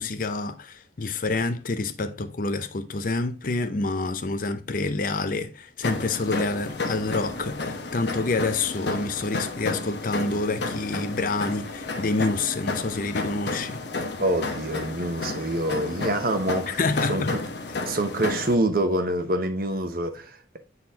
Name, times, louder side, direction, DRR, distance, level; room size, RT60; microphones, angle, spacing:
voice 1, 0.0-13.8 16.7-17.4, left 3 dB, 45° left, 0.6 m, -27 dB
sound 1, 5.8-18.5, left 3 dB, 65° left, 1.0 m, -32 dB
voice 2, 14.2-16.8 17.1-17.4 17.8-20.6, right 1 dB, 50° right, 1.0 m, -26 dB
8.6 x 4.0 x 2.8 m
head